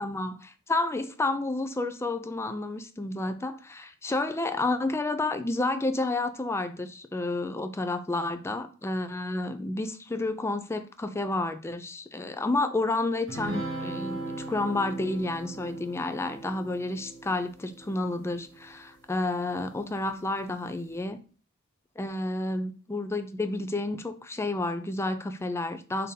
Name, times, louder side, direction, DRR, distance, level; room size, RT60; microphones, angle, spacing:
voice 1, 0.0-21.2 22.0-26.1, left 2 dB, 15° left, 0.3 m, -30 dB
sound 1, 13.3-18.9, right 2 dB, 65° right, 1.3 m, -38 dB
3.7 x 2.7 x 4.0 m
head